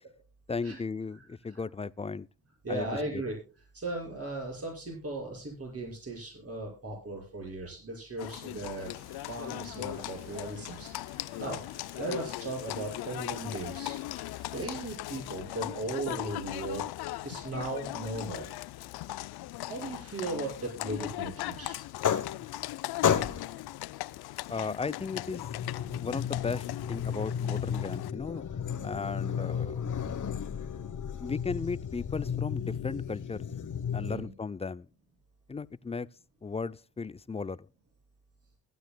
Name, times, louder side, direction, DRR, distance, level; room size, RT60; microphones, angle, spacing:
voice 1, 0.5-2.3 2.7-3.2 24.5-25.6 26.0-28.4 28.8-29.9 31.2-33.4 33.9-34.9 35.5-36.1 36.4-37.7, left 4 dB, 15° left, 0.5 m, -36 dB
voice 2, 2.6-3.4 3.7-8.9 9.2-10.9 11.4-14.0 14.5-16.8 17.2-18.4 19.7-21.8 34.0-34.3, right 2 dB, 35° right, 6.0 m, -37 dB
Livestock farm animals working animals, 8.2-28.1, left 16 dB, 75° left, 0.5 m, -39 dB
sound 1, 8.8-15.0, right 2 dB, 85° right, 6.8 m, -57 dB
sound 2, 21.8-22.7 23.0-23.7 24.8-34.2, left 8 dB, 50° left, 1.1 m, -33 dB
21.5 x 9.3 x 2.2 m
supercardioid pair, 55°, 38 cm